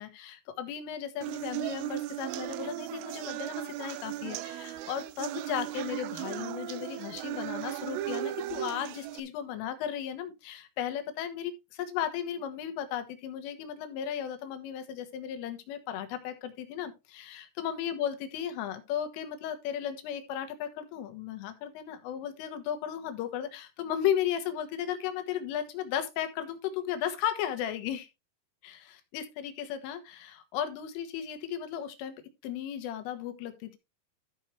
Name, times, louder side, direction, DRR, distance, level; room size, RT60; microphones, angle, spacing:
voice 1, 0.0-28.1 28.6-32.2 32.4-33.8, left 9 dB, 75° left, 3.7 m, -35 dB
sound 1, 1.2-9.2, right 15 dB, 85° right, 3.2 m, -37 dB
13.5 x 6.2 x 3.2 m
omnidirectional pair, 5.9 m